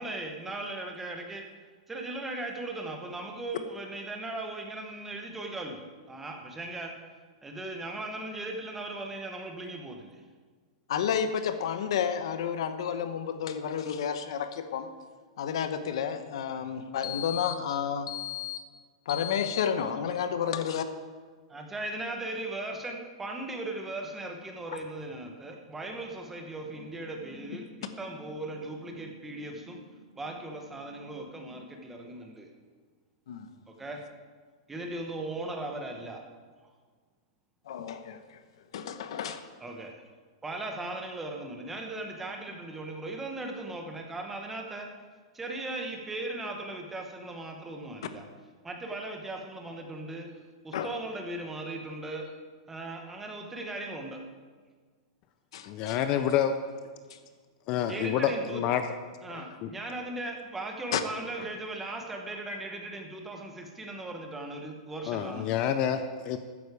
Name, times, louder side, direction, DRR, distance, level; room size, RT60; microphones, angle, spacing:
voice 1, 0.0-1.4 1.9-5.8 6.1-6.9 7.4-10.2 16.6-16.7 21.5-32.5 33.7-34.0 34.7-36.2 39.6-40.0 40.4-44.9 45.3-48.2 48.6-50.3 50.6-52.2 52.7-54.2 57.9-58.6 59.2-65.5, right 2 dB, 5° right, 2 dB, 1.0 m, -38 dB
voice 2, 10.9-14.9 15.4-18.6 19.1-20.8 24.7-24.8 33.3-33.5 37.7-38.4 38.7-39.4 50.7-50.9 55.5-56.0 57.1-57.2 60.9-61.0, left 8 dB, 55° left, 9 dB, 1.0 m, -31 dB
voice 3, 55.7-56.5 57.7-58.8 65.1-66.4, left 9 dB, 25° left, 9 dB, 0.5 m, -28 dB
13.5 x 9.5 x 4.8 m, 1.5 s
supercardioid pair, 180°, 3 cm